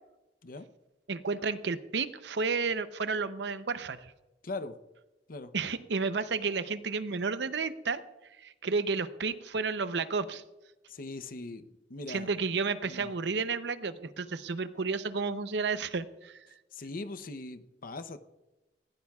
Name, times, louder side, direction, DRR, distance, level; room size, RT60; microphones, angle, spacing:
voice 1, 1.1-4.1 5.5-8.0 8.4-10.4 12.1-16.4, right 4 dB, 65° right, 12 dB, 0.7 m, -32 dB
voice 2, 4.4-4.8 5.3-5.5 10.9-12.3 12.8-13.1 16.7-18.2, left 2 dB, 50° left, 11 dB, 0.7 m, -40 dB
19.5 x 16.0 x 2.4 m, 1.0 s
head